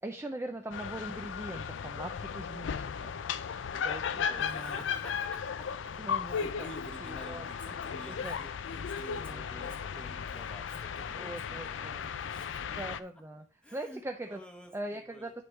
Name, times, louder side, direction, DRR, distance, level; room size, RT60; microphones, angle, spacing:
voice 1, 0.0-3.1 3.7-4.8 6.0-6.7 7.0-7.5 8.1-8.4 9.2-9.8 11.1-12.1 12.8-14.4 14.7-15.4, right 1 dB, 15° right, 4 dB, 0.4 m, -41 dB
sound 1, 0.7-13.0, left 7 dB, 80° left, 0.4 m, -36 dB
voice 2, 4.3-6.0 6.3-12.6 13.6-15.3, equal, 5° left, 3 dB, 1.0 m, -50 dB
9.5 x 3.6 x 4.4 m, 0.40 s
head